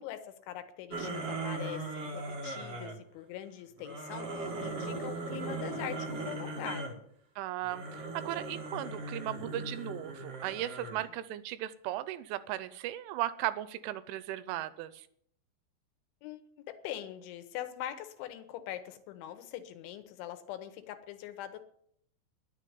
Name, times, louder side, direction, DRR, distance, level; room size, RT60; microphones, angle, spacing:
voice 1, 0.0-7.1 16.2-21.6, left 11 dB, 80° left, 10 dB, 3.2 m, -43 dB
sound 1, 0.9-3.0 3.8-7.0 7.6-11.1, right 2 dB, 55° right, 1.8 m, -38 dB
voice 2, 7.4-7.8 8.1-15.1, right 14 dB, 85° right, 15 dB, 3.1 m, -36 dB
10.5 x 7.2 x 9.5 m, 0.68 s
omnidirectional pair, 5.6 m